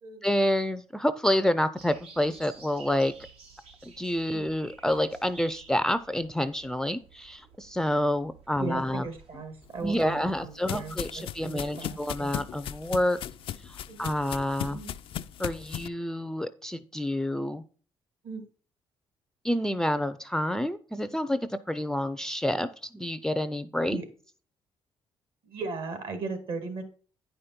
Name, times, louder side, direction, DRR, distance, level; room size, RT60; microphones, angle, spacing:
voice 1, 0.2-3.1 4.0-9.0 9.8-13.2 13.6-14.8 15.4-17.6 19.4-24.0, left 1 dB, 5° left, 12 dB, 0.5 m, -28 dB
sound 1, 1.8-15.6, right 5 dB, 80° right, 1.6 m, -55 dB
voice 2, 8.6-12.3 13.9-14.1 14.7-14.9 18.2-18.4 23.9-24.1 25.4-26.8, right 4 dB, 65° right, 8 dB, 2.2 m, -37 dB
sound 2, 9.8-15.9, left 11 dB, 65° left, 0.4 m, -38 dB
9.3 x 5.1 x 4.3 m, 0.40 s
cardioid pair, 100°, 10 cm